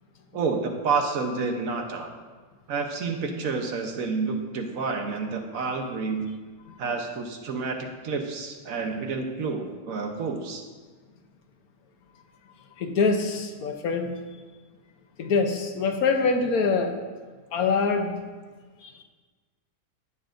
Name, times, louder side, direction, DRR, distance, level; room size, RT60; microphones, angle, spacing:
voice 1, 0.3-2.1 2.7-6.3 6.8-10.6, right 4 dB, 70° right, 4 dB, 1.3 m, -29 dB
voice 2, 12.8-14.1 15.2-16.9 17.5-18.2 18.8-19.0, left 4 dB, 75° left, 5 dB, 1.3 m, -24 dB
15.5 x 6.9 x 2.6 m, 1.4 s
omnidirectional pair, 1.6 m